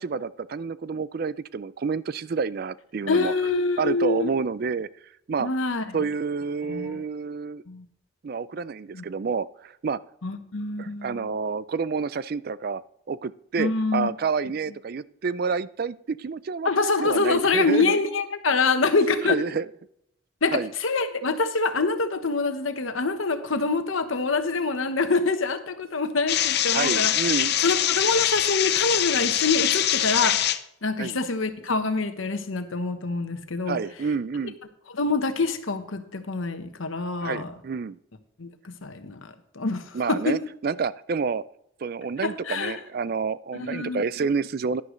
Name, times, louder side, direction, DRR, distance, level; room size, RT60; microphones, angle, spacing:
voice 1, 0.0-3.3 3.8-4.9 5.3-5.5 5.9-7.6 8.2-10.0 10.8-12.8 13.1-18.0 18.8-18.9 19.2-19.7 20.5-20.7 26.7-27.6 31.0-31.2 33.7-34.6 37.2-38.0 39.9-41.4 41.8-44.8, right 5 dB, 45° right, 18 dB, 0.3 m, -29 dB
voice 2, 3.1-4.3 5.4-5.8 6.7-7.0 7.7-7.9 8.9-9.0 10.2-11.2 13.6-14.1 16.6-19.4 20.4-27.1 27.6-30.4 30.8-33.8 34.9-37.5 38.4-40.4 42.2-42.8 43.6-44.0, left 3 dB, 75° left, 9 dB, 1.1 m, -25 dB
sound 1, 26.3-30.6, left 11 dB, 50° left, 0.6 m, -23 dB
11.5 x 11.0 x 3.2 m, 0.76 s
head